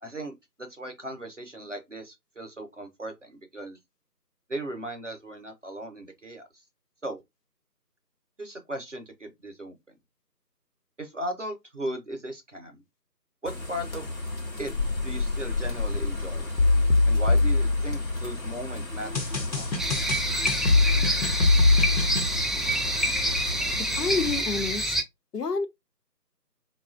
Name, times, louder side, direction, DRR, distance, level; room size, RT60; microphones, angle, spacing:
voice 1, 0.0-3.8 4.5-6.4 7.0-7.2 8.4-9.8 11.0-12.8 13.4-14.1 14.6-14.7 15.0-16.5 17.1-20.0, right 1 dB, 50° right, 0.7 m, -37 dB
sound 1, 13.5-24.4, left 2 dB, 55° left, 0.9 m, -33 dB
sound 2, 16.6-18.4 19.1-22.3, left 2 dB, 90° left, 1.0 m, -22 dB
sound 3, 19.8-25.0, equal, ahead, 0.3 m, -27 dB
voice 2, 24.0-25.0 25.3-25.7, left 4 dB, 70° left, 0.6 m, -29 dB
3.6 x 2.3 x 2.3 m
figure-of-eight pair, 170°, 50 cm